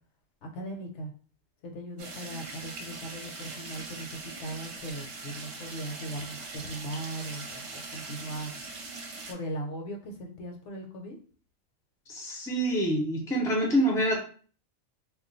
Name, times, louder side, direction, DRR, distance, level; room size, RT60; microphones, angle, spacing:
voice 1, 0.4-1.1 1.6-8.5 9.3-11.2, right 1 dB, 65° left, 2 dB, 0.9 m, -39 dB
sound 1, 2.0-9.3, right 3 dB, 65° right, 0.9 m, -41 dB
voice 2, 12.1-14.2, right 1 dB, 5° left, -1 dB, 0.4 m, -26 dB
2.4 x 2.2 x 3.8 m, 0.42 s
omnidirectional pair, 1.4 m